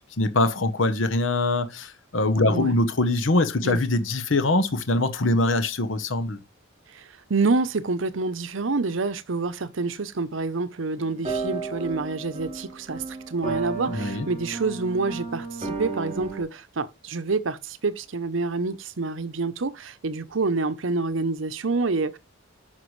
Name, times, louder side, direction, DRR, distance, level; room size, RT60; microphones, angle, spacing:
voice 1, 0.2-6.4 13.9-14.3, left 2 dB, 70° left, 1.0 m, -23 dB
voice 2, 6.9-22.2, right 3 dB, 75° right, 0.7 m, -27 dB
sound 1, 11.0-11.1 11.2-16.4, right 4 dB, 35° right, 3.7 m, -33 dB
9.5 x 5.8 x 3.2 m
head